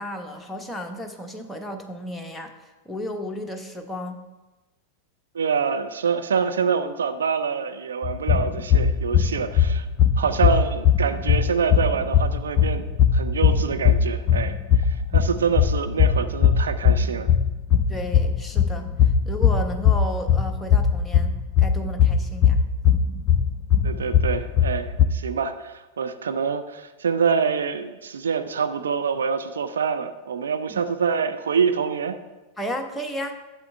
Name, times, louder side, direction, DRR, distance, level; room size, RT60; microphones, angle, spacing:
voice 1, 0.0-4.2 17.9-18.9 19.2-22.6 30.7-30.9 32.6-33.4, equal, 5° left, 2 dB, 1.2 m, -33 dB
voice 2, 5.3-9.9 10.2-12.8 13.1-14.5 14.9-17.3 23.8-32.2, right 6 dB, 65° right, 9 dB, 0.7 m, -26 dB
sound 1, 8.0-25.1, left 7 dB, 35° left, 0.5 m, -20 dB
12.0 x 8.4 x 3.4 m, 1.1 s
figure-of-eight pair, 90°, 0 cm